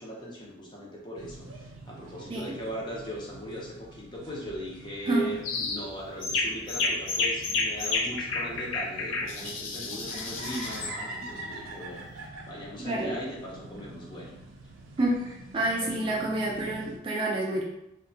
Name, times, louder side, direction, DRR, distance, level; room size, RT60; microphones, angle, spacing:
voice 1, 0.0-14.3, equal, 25° left, -4 dB, 0.5 m, -39 dB
sound 1, 1.2-17.0, right 2 dB, 85° right, 0.5 m, -45 dB
sound 2, 5.4-5.8 6.2-10.9, left 3 dB, 85° left, 0.5 m, -30 dB
voice 2, 12.8-13.1 15.0-17.6, right 1 dB, 25° right, -3 dB, 0.3 m, -28 dB
2.7 x 2.1 x 2.7 m, 0.86 s
head